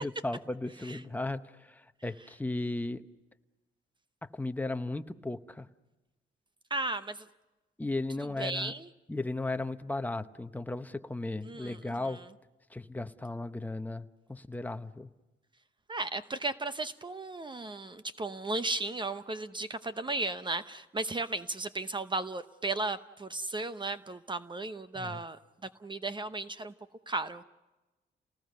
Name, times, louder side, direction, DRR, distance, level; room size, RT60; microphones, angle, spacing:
voice 1, 0.0-3.0 4.3-5.7 7.8-8.7 9.1-12.2 12.7-15.1 24.9-25.2, left 2 dB, 10° left, 9 dB, 1.0 m, -36 dB
voice 2, 6.7-7.3 8.4-8.9 11.4-12.3 15.9-26.7 27.1-27.4, right 2 dB, 25° right, 11 dB, 0.8 m, -35 dB
30.0 x 19.5 x 6.7 m, 1.1 s
cardioid pair, 90°, 20 cm